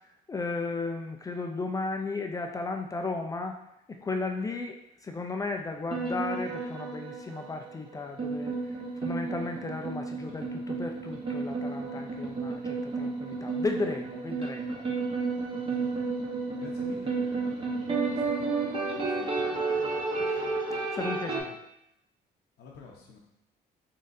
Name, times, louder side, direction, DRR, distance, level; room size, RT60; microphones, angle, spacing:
voice 1, 0.3-3.5 4.0-4.8 5.0-14.8 20.2-20.4 20.9-21.6, left 3 dB, 20° left, 3 dB, 0.4 m, -35 dB
sound 1, 5.9-21.4, right 3 dB, 30° right, 1.0 m, -32 dB
voice 2, 15.7-16.1 16.6-20.6 22.6-23.2, left 4 dB, 75° left, -2 dB, 0.7 m, -50 dB
4.0 x 3.8 x 2.6 m, 0.79 s
cardioid pair, 110°, 17 cm